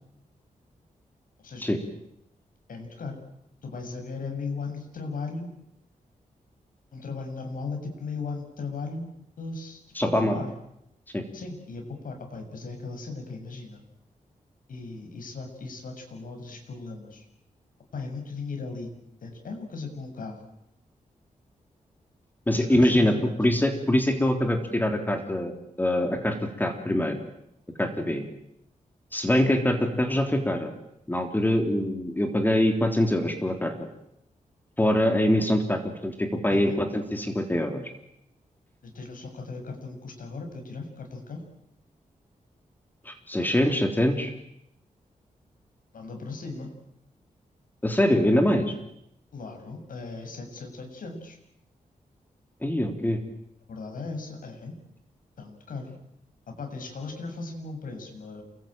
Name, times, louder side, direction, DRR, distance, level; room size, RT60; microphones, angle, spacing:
voice 1, 1.4-1.7 2.7-3.2 3.6-5.5 6.9-9.1 9.4-10.5 11.3-13.8 14.7-17.3 17.9-18.9 19.2-20.4 22.7-23.3 36.5-36.8 38.8-41.4 45.9-46.7 49.3-51.4 53.7-54.7 55.4-56.0 56.5-58.4, left 4 dB, 75° left, 4 dB, 7.3 m, -37 dB
voice 2, 10.0-10.3 11.1-11.2 22.5-25.5 25.8-27.2 27.8-28.2 29.1-30.7 31.1-33.7 34.8-37.8 43.1-44.3 47.8-48.7 52.6-53.2, left 1 dB, 15° left, 5 dB, 3.4 m, -24 dB
28.5 x 23.0 x 9.0 m, 0.79 s
wide cardioid pair, 125°, 14 cm